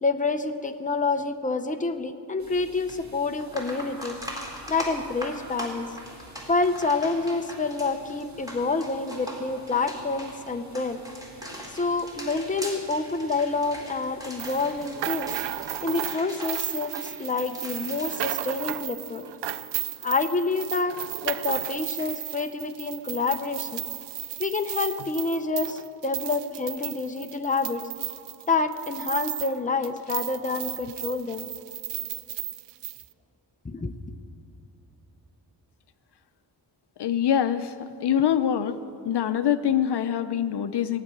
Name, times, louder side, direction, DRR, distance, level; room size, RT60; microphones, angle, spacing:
voice 1, 0.0-4.2 4.7-5.9 6.5-11.0 11.7-15.3 15.8-19.3 20.0-21.0 21.2-23.8 24.4-27.8 28.5-31.4 33.6-33.9, left 3 dB, 20° left, 7 dB, 0.7 m, -28 dB
sound 1, 2.4-15.2, right 2 dB, 40° right, 1.7 m, -51 dB
sound 2, 2.9-3.0 3.4-19.0 19.3-19.5 22.0-22.1, equal, 10° right, 3.2 m, -41 dB
sound 3, 14.4-29.6 29.8-33.1, right 13 dB, 80° right, 0.5 m, -34 dB
voice 2, 37.0-38.8 39.0-41.0, left 9 dB, 70° left, 11 dB, 0.7 m, -24 dB
17.5 x 7.5 x 9.9 m, 2.7 s
wide cardioid pair, 115°, 42 cm